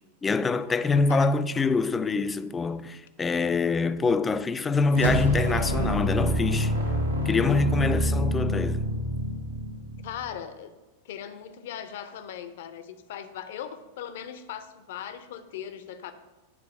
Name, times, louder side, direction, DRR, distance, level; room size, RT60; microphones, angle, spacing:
voice 1, 0.2-6.7 7.3-8.8, left 3 dB, 15° left, 0.3 m, -25 dB
voice 2, 0.9-1.3 10.0-10.7 11.0-16.1, left 9 dB, 55° left, 0.6 m, -39 dB
sound 1, 4.9-10.3, equal, 80° right, 1.1 m, -27 dB
8.5 x 4.0 x 5.3 m
figure-of-eight pair, 90°, 0 cm